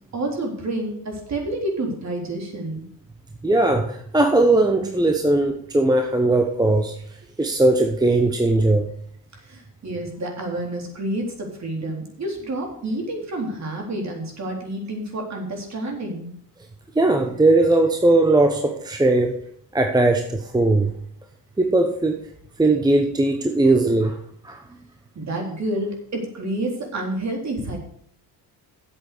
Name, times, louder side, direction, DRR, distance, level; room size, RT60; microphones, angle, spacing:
voice 1, 0.1-2.8 9.5-16.3 25.2-27.8, right 1 dB, 40° right, 1 dB, 3.6 m, -29 dB
voice 2, 3.4-6.9 7.4-8.9 16.9-19.4 19.7-20.9 21.6-22.2 22.6-24.2 24.4-24.6, right 2 dB, 10° right, 5 dB, 1.0 m, -19 dB
8.3 x 7.9 x 6.7 m, 0.65 s
cardioid pair, 100°, 41 cm